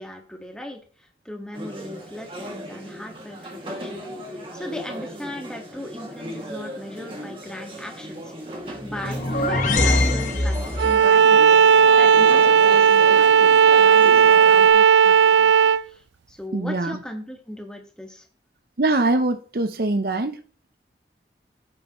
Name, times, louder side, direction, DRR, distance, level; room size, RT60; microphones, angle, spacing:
voice 1, 0.0-8.3 8.8-18.2, left 1 dB, 5° left, 1.7 m, -38 dB
sound 1, 1.5-14.7, equal, 30° right, 2.2 m, -37 dB
sound 2, 8.8-11.1, left 2 dB, 45° left, 1.2 m, -23 dB
Bowed string instrument, 10.8-15.8, right 7 dB, 80° right, 0.3 m, -14 dB
voice 2, 16.5-17.0 18.8-20.4, right 2 dB, 55° right, 0.7 m, -23 dB
9.3 x 8.7 x 3.1 m
head